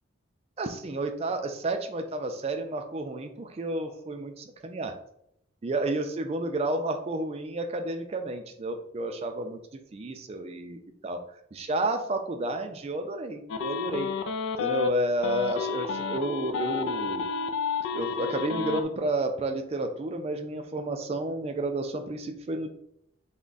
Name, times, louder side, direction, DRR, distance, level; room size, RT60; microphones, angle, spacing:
voice 1, 0.6-4.9 5.6-9.6 9.9-11.2 11.5-14.1 14.6-17.3 17.9-22.7, right 2 dB, 30° right, 6 dB, 0.3 m, -31 dB
sound 1, 13.5-14.9 15.2-18.8, left 6 dB, 70° left, 0.3 m, -30 dB
3.4 x 2.1 x 3.9 m, 0.73 s
head